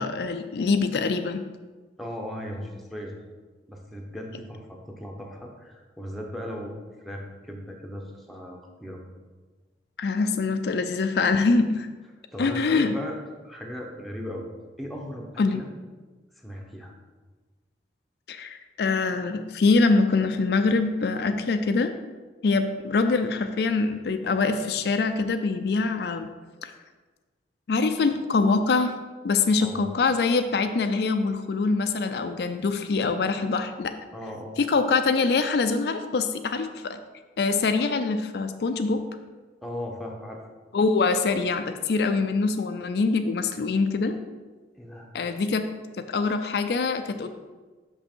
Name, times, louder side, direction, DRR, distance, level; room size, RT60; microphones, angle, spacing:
voice 1, 0.0-1.4 10.0-11.9 12.4-12.9 15.4-15.6 18.3-21.9 22.4-26.3 26.6-26.7 27.7-29.0 29.2-33.9 34.6-37.0 37.4-39.0 40.7-44.2 45.1-45.7 46.1-47.3, left 4 dB, 65° left, 8 dB, 0.4 m, -24 dB
voice 2, 2.0-3.2 3.7-6.8 7.0-9.0 12.3-13.2 13.4-14.5 14.8-15.7 16.4-16.9 29.6-29.9 34.1-34.6 39.6-40.4 44.7-45.1, equal, ahead, 0 dB, 0.8 m, -37 dB
6.1 x 5.4 x 4.4 m, 1.3 s
head